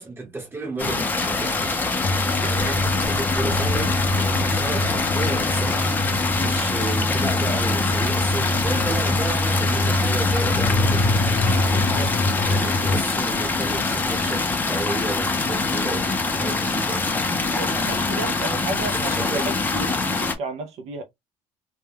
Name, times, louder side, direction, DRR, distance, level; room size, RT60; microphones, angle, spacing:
voice 1, 0.0-1.7 2.4-5.9 6.4-11.4 12.4-17.1 18.9-19.5 19.8-20.0, right 2 dB, 20° right, 1.0 m, -32 dB
sound 1, 0.8-20.3, left 3 dB, 15° left, 0.5 m, -24 dB
sound 2, 2.0-13.0, left 1 dB, 65° left, 0.5 m, -25 dB
voice 2, 11.7-12.2 17.5-21.0, right 3 dB, 60° right, 0.5 m, -33 dB
2.2 x 2.1 x 3.3 m
cardioid pair, 130°, 12 cm